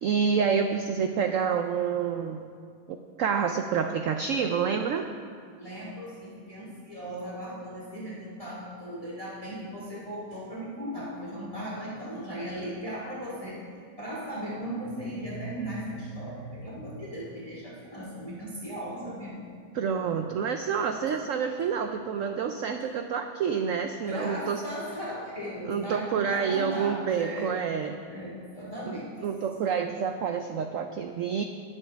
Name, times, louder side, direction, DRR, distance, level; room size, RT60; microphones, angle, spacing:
voice 1, 0.0-2.4 2.9-5.1 19.7-24.7 25.6-28.0 28.9-31.4, right 6 dB, 85° right, 6 dB, 0.7 m, -28 dB
voice 2, 5.6-13.6 14.0-19.4 24.1-27.6 28.1-29.1, equal, 20° left, -6 dB, 2.0 m, -37 dB
19.5 x 7.2 x 3.4 m, 2.2 s
omnidirectional pair, 1.9 m